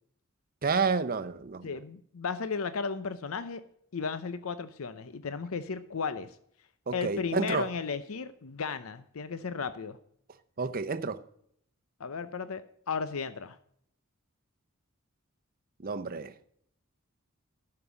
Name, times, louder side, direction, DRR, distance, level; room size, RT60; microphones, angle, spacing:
voice 1, 0.6-1.7 6.9-7.7 10.6-11.2 15.8-16.3, right 4 dB, 45° right, 0.7 m, -30 dB
voice 2, 1.6-3.6 3.9-6.4 6.9-10.0 12.0-12.6 12.9-13.6, left 5 dB, 80° left, 0.7 m, -34 dB
11.0 x 6.8 x 6.9 m
head